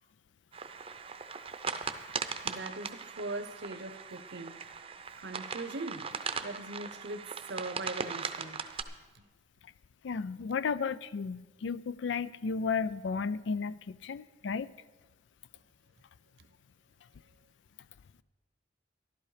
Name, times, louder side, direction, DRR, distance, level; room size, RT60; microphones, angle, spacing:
sound 1, 0.5-8.8, right 5 dB, 30° right, 0.6 m, -39 dB
voice 1, 2.4-4.5 5.2-6.1 6.4-8.7 9.1-9.2, right 2 dB, 65° right, 0.9 m, -40 dB
voice 2, 10.0-14.7, left 5 dB, 90° left, 0.4 m, -33 dB
14.0 x 12.0 x 4.9 m
head